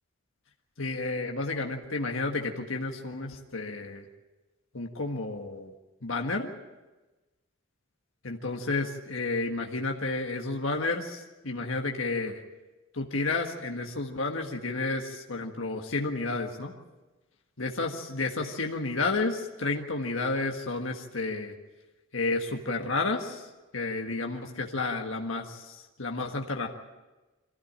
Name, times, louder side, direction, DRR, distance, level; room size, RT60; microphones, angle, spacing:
voice 1, 0.8-4.1 4.7-5.7 6.0-6.5 8.2-12.4 12.9-16.7 17.6-21.5 22.1-23.5 23.7-26.7, left 3 dB, 75° left, 2 dB, 1.6 m, -31 dB
23.5 x 15.5 x 8.8 m, 1.1 s
head